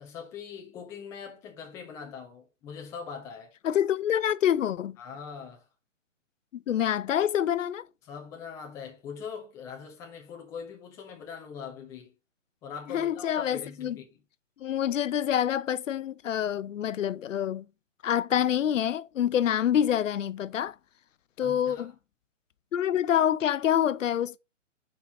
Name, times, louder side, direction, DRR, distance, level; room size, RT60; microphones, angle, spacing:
voice 1, 0.0-3.5 5.0-5.7 8.0-12.1 12.6-14.2 21.4-21.9, left 6 dB, 10° left, 0.6 m, -42 dB
voice 2, 3.6-5.0 6.5-7.9 12.9-14.0 14.6-17.6 18.0-20.8 21.4-21.9 22.7-24.4, left 10 dB, 85° left, 0.6 m, -26 dB
4.5 x 4.2 x 5.6 m
hypercardioid pair, 150°, 37 cm